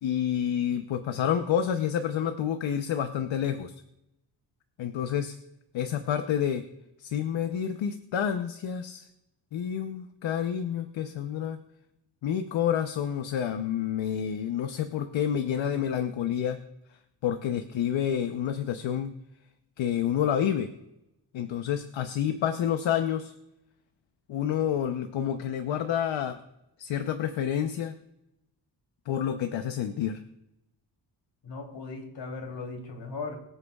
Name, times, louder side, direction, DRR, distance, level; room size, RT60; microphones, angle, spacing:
voice 1, 0.0-3.7 4.8-5.4 5.7-6.6 7.0-9.1 9.5-11.6 12.2-16.6 17.2-19.1 19.8-20.7 21.3-23.3 24.3-26.4 26.8-28.0 29.1-30.2, left 9 dB, 90° left, 7 dB, 0.9 m, -29 dB
voice 2, 31.4-33.4, left 3 dB, 70° left, 1 dB, 3.4 m, -37 dB
24.0 x 8.3 x 2.4 m, 0.86 s
cardioid pair, 100°, 45 cm